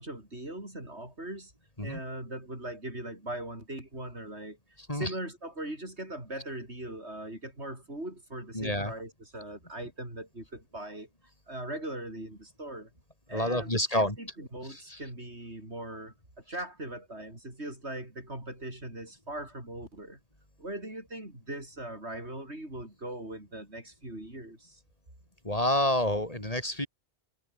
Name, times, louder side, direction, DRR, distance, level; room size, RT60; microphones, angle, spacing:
voice 1, 0.0-1.5 1.8-4.6 4.9-11.1 11.5-12.9 13.3-20.2 20.6-24.8, right 1 dB, 80° right, 8.4 m, -40 dB
voice 2, 8.5-8.9 13.3-14.1 14.7-15.0 25.4-26.9, left 1 dB, 35° left, 5.7 m, -28 dB
omnidirectional pair, 1.1 m